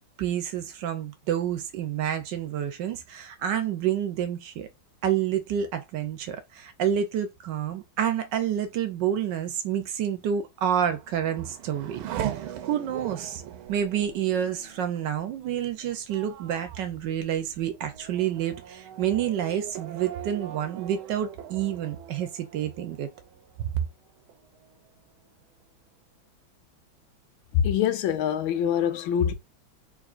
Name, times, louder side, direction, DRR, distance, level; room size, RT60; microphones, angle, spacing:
voice 1, 0.2-4.7 5.0-13.4 13.7-23.1 23.6-23.7, right 9 dB, 70° right, 1.2 m, -29 dB
Race car auto racing / Accelerating revving vroom, 10.8-23.9 24.3-25.0, right 10 dB, 85° right, 1.5 m, -40 dB
voice 2, 27.5-29.3, left 9 dB, 80° left, 1.4 m, -24 dB
3.6 x 3.5 x 2.4 m
omnidirectional pair, 2.2 m